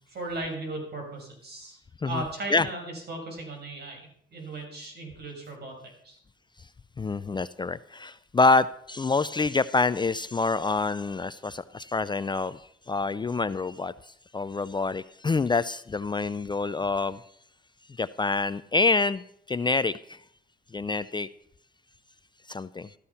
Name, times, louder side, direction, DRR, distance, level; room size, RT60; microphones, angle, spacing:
voice 1, 0.1-1.8 2.0-4.0 4.3-6.2, right 2 dB, 55° right, 2 dB, 6.6 m, -37 dB
voice 2, 7.0-12.6 12.9-13.9 14.3-17.2 18.0-20.2 20.7-21.3 22.5-22.9, left 3 dB, 20° left, 14 dB, 0.5 m, -26 dB
14.0 x 13.5 x 5.7 m, 0.67 s
cardioid pair, 90°, 20 cm